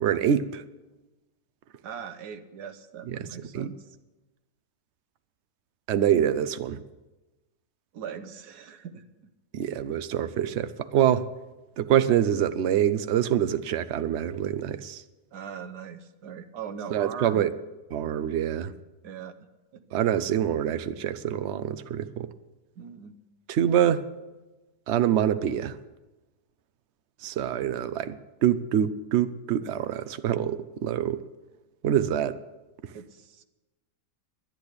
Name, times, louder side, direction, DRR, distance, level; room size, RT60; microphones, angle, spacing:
voice 1, 0.0-0.6 3.1-3.7 5.9-6.8 9.5-11.3 11.8-15.0 16.9-17.5 17.9-18.7 19.9-22.3 23.5-24.0 24.9-25.8 27.2-28.2 28.4-31.2 31.8-32.4 32.8-32.9, right 10 dB, 60° right, 13 dB, 0.8 m, -25 dB
voice 2, 1.8-3.8 7.9-9.0 15.3-17.5 19.0-19.4 19.7-19.8 22.8-23.1 32.9-33.4, right 7 dB, 85° right, 10 dB, 1.5 m, -40 dB
10.5 x 10.5 x 8.1 m, 1.1 s
omnidirectional pair, 1.7 m